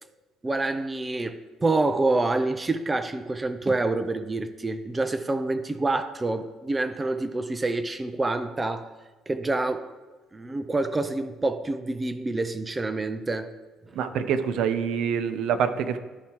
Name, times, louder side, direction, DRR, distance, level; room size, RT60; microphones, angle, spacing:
voice 1, 0.4-8.9 9.3-9.9 10.3-13.5, right 2 dB, 15° right, 9 dB, 0.4 m, -27 dB
voice 2, 13.9-16.0, right 7 dB, 70° right, 10 dB, 0.5 m, -26 dB
13.0 x 4.5 x 2.9 m, 1.3 s
cardioid pair, 140°, 0 cm